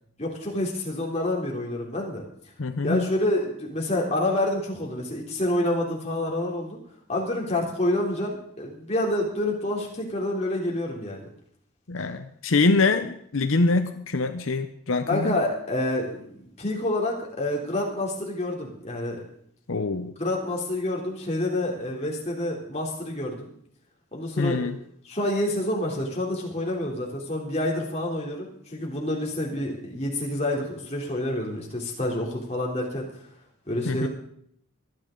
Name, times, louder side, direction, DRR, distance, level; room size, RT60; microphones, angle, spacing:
voice 1, 0.2-2.2 2.8-6.8 7.1-11.2 15.1-19.2 20.2-23.5 24.1-24.7 25.0-33.1 33.7-34.1, left 1 dB, 30° left, -2 dB, 3.1 m, -28 dB
voice 2, 2.6-3.1 11.9-15.3 19.7-20.1 24.4-24.8 33.9-34.1, left 3 dB, 80° left, 9 dB, 0.8 m, -24 dB
24.5 x 9.6 x 3.8 m, 0.65 s
head